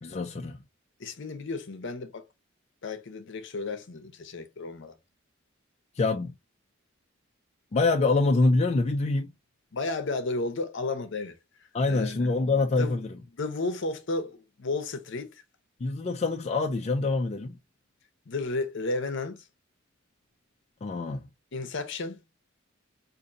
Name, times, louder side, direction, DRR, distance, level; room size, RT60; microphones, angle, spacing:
voice 1, 0.0-0.6 6.0-6.3 7.7-9.3 11.7-13.1 15.8-17.6 20.8-21.3, left 3 dB, 30° left, 0.4 m, -25 dB
voice 2, 1.0-2.2 2.8-5.0 9.7-12.3 12.8-13.0 13.4-15.4 18.3-19.4 21.5-22.2, left 3 dB, 65° left, 0.7 m, -33 dB
5.0 x 2.6 x 2.5 m
head